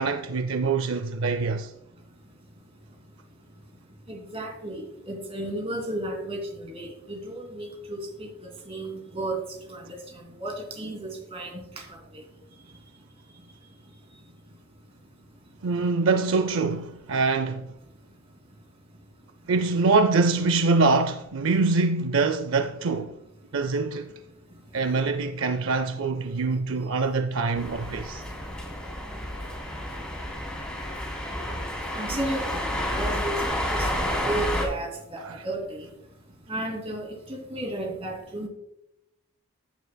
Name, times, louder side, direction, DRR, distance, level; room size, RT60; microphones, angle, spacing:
voice 1, 0.0-1.7 15.6-17.7 19.5-23.1 23.5-24.1 24.7-28.2 35.2-35.3, right 3 dB, 60° right, 0.5 m, -24 dB
voice 2, 4.1-8.3 8.7-9.4 9.7-10.0 10.4-11.6 31.9-35.9 36.5-38.5, right 1 dB, 25° right, 2.6 m, -33 dB
sound 1, 27.5-34.6, left 1 dB, 5° left, 2.7 m, -30 dB
15.0 x 9.6 x 2.2 m
head